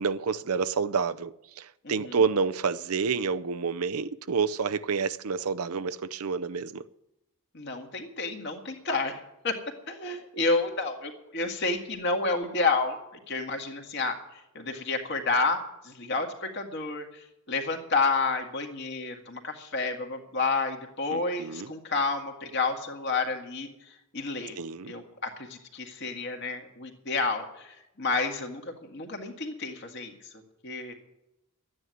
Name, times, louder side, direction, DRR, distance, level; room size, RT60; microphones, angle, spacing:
voice 1, 0.0-6.9 21.1-21.7 24.6-24.9, right 5 dB, 90° right, 0.6 m, -29 dB
voice 2, 1.8-2.2 7.5-9.6 9.9-24.6 24.9-30.9, left 3 dB, 55° left, 1.9 m, -30 dB
12.5 x 9.7 x 9.4 m
head